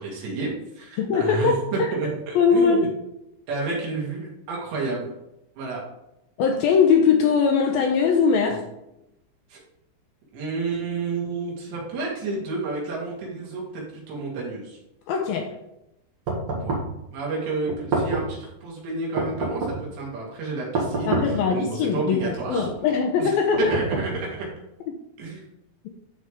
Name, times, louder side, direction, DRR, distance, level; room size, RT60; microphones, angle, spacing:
voice 1, 0.0-2.9 3.5-5.1 5.6-5.8 9.5-9.6 10.3-14.8 16.6-16.8 17.1-22.7 23.2-23.3 23.7-24.5 25.2-25.5, right 3 dB, 80° right, -4 dB, 5.0 m, -30 dB
voice 2, 1.0-1.9 2.4-2.9 6.4-8.7 15.1-15.6 21.1-23.7 24.9-25.0, left 6 dB, 75° left, 3 dB, 2.3 m, -21 dB
sound 1, 16.3-17.0 17.7-18.4 19.2-19.9 20.7-21.5 22.2-22.8 23.5-24.4, right 3 dB, 55° right, 1.5 m, -28 dB
12.0 x 5.0 x 3.6 m, 0.88 s
omnidirectional pair, 4.9 m